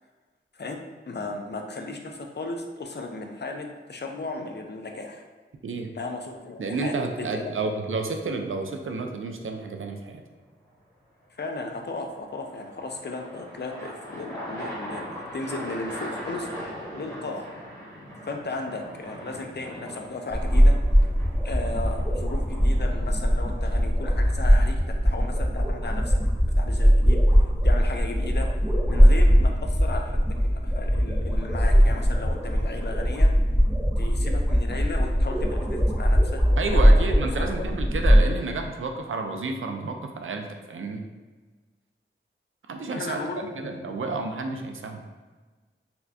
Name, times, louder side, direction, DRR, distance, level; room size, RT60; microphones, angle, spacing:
voice 1, 0.5-5.2 5.9-7.8 11.3-16.6 17.0-17.5 18.2-20.8 21.4-26.1 26.4-28.5 28.9-33.3 34.0-36.9 37.4-37.8 42.9-44.0, left 3 dB, 55° left, 3 dB, 0.5 m, -35 dB
voice 2, 5.6-5.9 6.6-10.2 36.6-41.0 42.7-45.0, right 3 dB, 75° right, 4 dB, 0.4 m, -31 dB
sound 1, 11.7-26.3, equal, 15° left, 1.2 m, -41 dB
sound 2, 20.3-38.2, equal, 10° right, 0.8 m, -20 dB
4.2 x 2.3 x 2.7 m, 1.4 s
wide cardioid pair, 55°, 21 cm